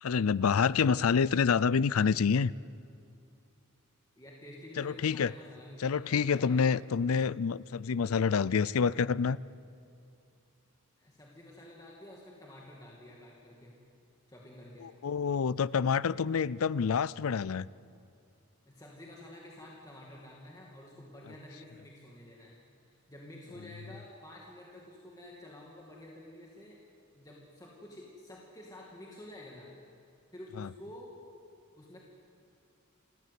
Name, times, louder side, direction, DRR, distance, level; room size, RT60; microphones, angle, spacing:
voice 1, 0.0-2.5 4.8-5.3 5.8-9.4 14.8-17.7 30.6-30.7, left 6 dB, 85° left, 20 dB, 0.5 m, -27 dB
voice 2, 4.2-6.8 11.0-13.7 14.3-14.9 18.7-22.6 22.8-26.8 27.1-29.7 30.3-31.1 31.8-32.0, left 1 dB, 15° left, -3 dB, 2.3 m, -50 dB
28.0 x 14.5 x 8.3 m, 2.5 s
head